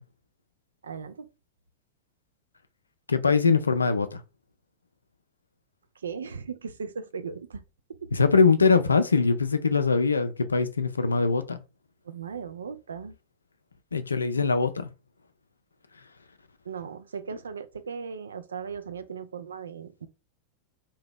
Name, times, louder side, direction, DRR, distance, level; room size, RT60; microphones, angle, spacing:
voice 1, 0.8-1.3 6.0-7.6 8.0-8.1 12.0-13.1 16.6-20.1, right 6 dB, 70° right, 0.3 m, -37 dB
voice 2, 3.1-4.2 8.1-11.6 13.9-14.9, left 4 dB, 75° left, 0.3 m, -22 dB
2.7 x 2.1 x 3.5 m
figure-of-eight pair, 90°, 0 cm